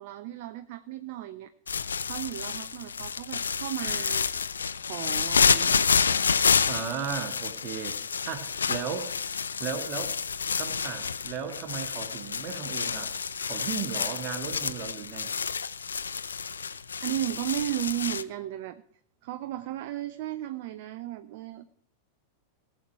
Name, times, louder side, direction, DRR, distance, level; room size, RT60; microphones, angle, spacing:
voice 1, 0.0-1.5 2.0-4.5 4.9-5.8 16.7-18.8 19.2-21.7, right 14 dB, 50° right, 12 dB, 0.6 m, -35 dB
sound 1, 1.7-18.2, left 6 dB, 70° left, 0.6 m, -29 dB
voice 2, 6.7-9.2 9.6-10.2 10.6-15.3, right 7 dB, 35° right, 5 dB, 1.9 m, -36 dB
18.5 x 7.7 x 4.6 m, 0.66 s
figure-of-eight pair, 90°, 0 cm